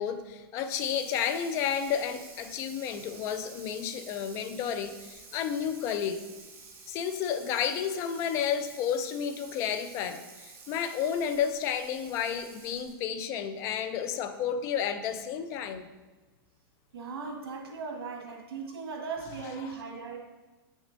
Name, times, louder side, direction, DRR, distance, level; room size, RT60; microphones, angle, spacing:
voice 1, 0.0-6.2 6.9-15.9 19.6-19.7, left 8 dB, 20° left, 10 dB, 0.3 m, -31 dB
Water tap faucet / Sink (filling or washing), 0.6-13.1, right 4 dB, 15° right, 0.8 m, -50 dB
voice 2, 16.9-20.2, right 5 dB, 85° right, 1 dB, 1.5 m, -38 dB
7.9 x 6.2 x 2.6 m, 1.3 s
supercardioid pair, 165°, 13 cm